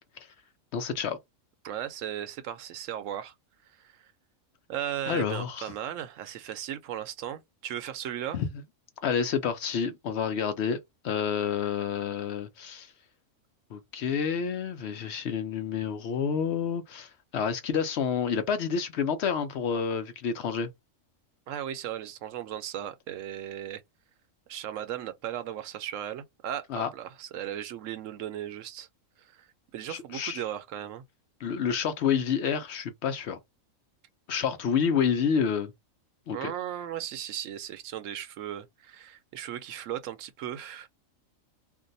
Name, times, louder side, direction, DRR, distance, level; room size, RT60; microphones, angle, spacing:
voice 1, 0.7-1.2 5.1-5.7 8.3-8.6 9.0-10.8 11.0-12.9 13.7-20.7 26.7-26.9 29.9-30.4 31.4-33.4 34.3-35.7 36.3-36.5, left 7 dB, 65° left, 0.7 m, -29 dB
voice 2, 1.6-3.3 3.8-3.9 4.7-8.4 21.5-23.8 24.5-26.7 26.9-28.9 29.2-29.5 29.7-31.0 36.3-40.9, right 11 dB, 75° right, 0.9 m, -36 dB
2.6 x 2.1 x 3.9 m
omnidirectional pair, 1.4 m